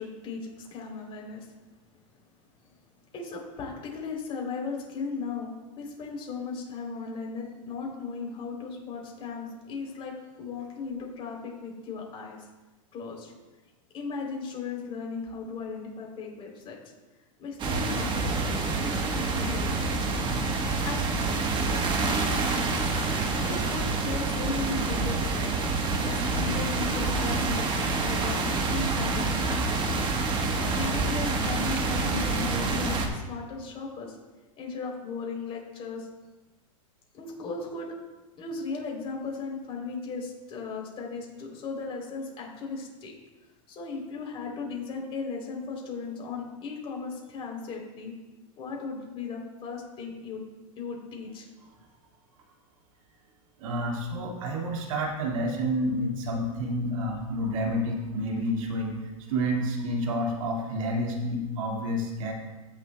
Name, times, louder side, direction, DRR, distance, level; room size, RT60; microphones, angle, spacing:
voice 1, 0.0-1.5 3.1-12.4 12.9-13.3 13.9-16.8 17.4-18.4 18.8-19.8 20.8-21.1 21.6-22.8 23.4-25.6 26.0-28.5 28.7-30.0 30.5-34.2 34.6-36.1 37.1-37.9 38.4-43.1 43.7-48.1 48.6-50.4 50.7-51.5, left 4 dB, 30° left, -1 dB, 3.3 m, -36 dB
sound 1, 17.6-33.1, right 3 dB, 25° right, 1.2 m, -27 dB
voice 2, 53.6-59.0 59.3-62.3, equal, 70° right, 0 dB, 2.1 m, -29 dB
16.0 x 7.1 x 2.3 m, 1.2 s
hypercardioid pair, 125°, 18 cm